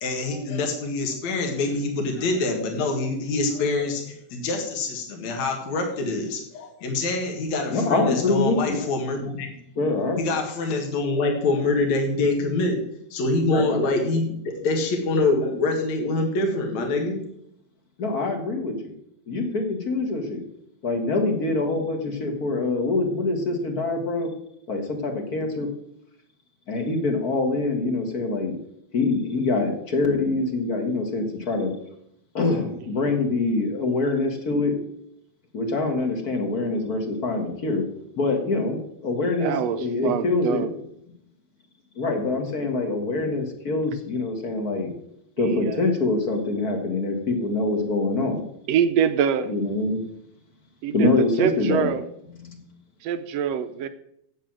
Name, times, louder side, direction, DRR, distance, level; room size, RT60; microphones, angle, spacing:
voice 1, 0.0-9.5 10.2-12.8 13.1-17.2, left 2 dB, 70° left, 2 dB, 3.1 m, -25 dB
voice 2, 7.7-8.8 9.8-10.3 13.5-13.8 18.0-18.9 19.3-20.4 20.8-24.3 24.7-25.7 26.7-28.6 28.9-31.7 32.3-34.7 35.5-37.8 38.2-39.5 39.8-40.7 42.0-44.9 45.4-48.4 49.5-50.0 50.9-51.9 52.4-52.6, left 3 dB, 40° left, 4 dB, 1.6 m, -24 dB
voice 3, 39.4-40.7 45.4-45.9 48.7-49.5 50.8-52.0 53.0-53.9, right 8 dB, 75° right, 11 dB, 1.6 m, -25 dB
8.8 x 8.4 x 7.5 m, 0.75 s
omnidirectional pair, 3.4 m